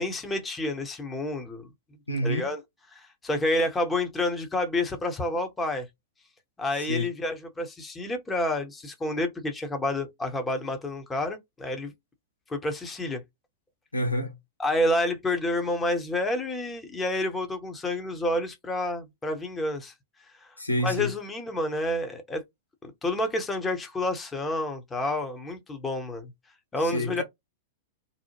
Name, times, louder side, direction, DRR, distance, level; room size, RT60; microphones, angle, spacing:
voice 1, 0.0-1.7 2.2-2.6 2.9-5.9 6.6-11.9 12.5-13.2 14.6-19.9 20.8-22.4 22.8-26.3 26.7-27.2, left 1 dB, 15° left, 0.8 m, -29 dB
voice 2, 2.1-2.5 6.9-7.1 13.9-14.3 20.6-21.1 26.9-27.2, equal, 85° left, 0.7 m, -27 dB
2.7 x 2.0 x 2.9 m
figure-of-eight pair, 95°, 0 cm